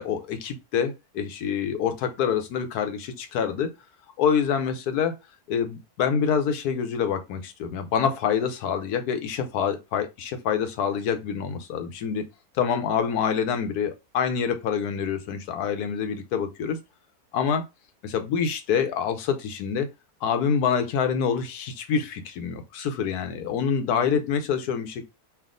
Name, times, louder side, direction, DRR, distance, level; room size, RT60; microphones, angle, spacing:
voice 1, 0.0-3.7 4.2-5.1 5.5-10.1 10.5-12.2 12.5-16.8 17.3-17.6 18.0-19.9 20.2-25.0, left 7 dB, 85° left, 1.2 m, -26 dB
3.4 x 2.6 x 3.7 m
omnidirectional pair, 1.6 m